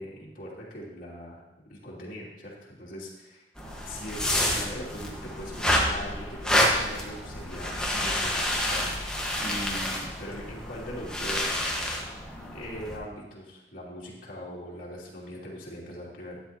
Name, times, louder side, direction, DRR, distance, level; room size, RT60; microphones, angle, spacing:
voice 1, 0.0-3.4 3.8-11.7 12.5-16.4, equal, 55° left, -5 dB, 2.7 m, -41 dB
sound 1, 3.6-13.0, left 1 dB, 5° left, 1.4 m, -29 dB
12.5 x 9.9 x 2.9 m, 1.0 s
head